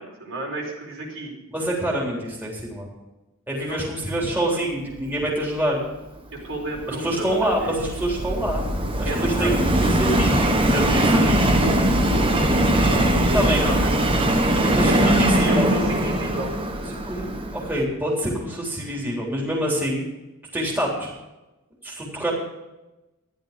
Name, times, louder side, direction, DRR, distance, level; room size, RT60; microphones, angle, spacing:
voice 1, 0.0-1.3 3.6-3.8 4.5-4.6 6.3-7.8 9.0-9.5 10.7-13.9 14.6-16.5, right 1 dB, 65° right, -1 dB, 4.7 m, -32 dB
voice 2, 1.5-2.9 3.5-5.8 7.0-8.6 9.0-11.0 13.3-13.7 14.7-15.7 16.8-20.1 20.5-21.1 21.8-22.3, right 1 dB, 10° right, -4 dB, 3.7 m, -26 dB
Subway metro underground, 6.5-17.8, right 1 dB, 25° right, 1.4 m, -21 dB
14.0 x 11.0 x 5.2 m, 1.0 s
head